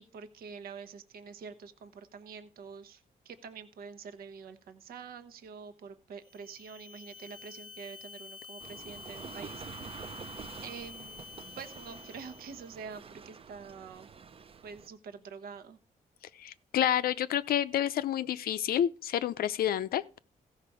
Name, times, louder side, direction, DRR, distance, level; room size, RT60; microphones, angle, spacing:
voice 1, 0.0-10.1 10.6-11.3 11.6-14.1 14.6-15.8, right 6 dB, 80° right, 1.0 m, -46 dB
sound 1, 6.2-12.8, left 4 dB, 25° left, 0.7 m, -49 dB
sound 2, 8.6-14.9, right 6 dB, 40° right, 0.6 m, -47 dB
voice 2, 16.4-20.2, left 10 dB, 80° left, 0.6 m, -29 dB
15.0 x 5.7 x 4.8 m
cardioid pair, 90°, 15 cm